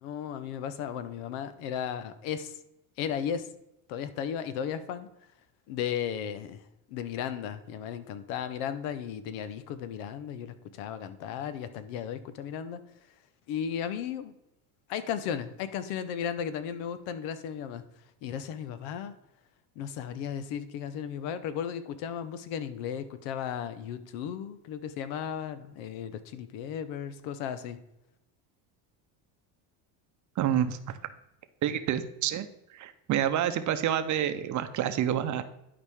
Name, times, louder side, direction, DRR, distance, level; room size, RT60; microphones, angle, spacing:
voice 1, 0.0-2.6 3.0-3.5 3.9-5.1 5.7-6.6 6.9-12.8 13.5-14.3 14.9-17.8 18.2-19.1 19.8-27.8, left 8 dB, 80° left, 12 dB, 0.9 m, -35 dB
voice 2, 30.4-31.0 31.6-32.5 32.7-35.4, right 10 dB, 40° right, 10 dB, 0.7 m, -28 dB
11.0 x 5.1 x 3.6 m, 0.84 s
cardioid pair, 135°, 44 cm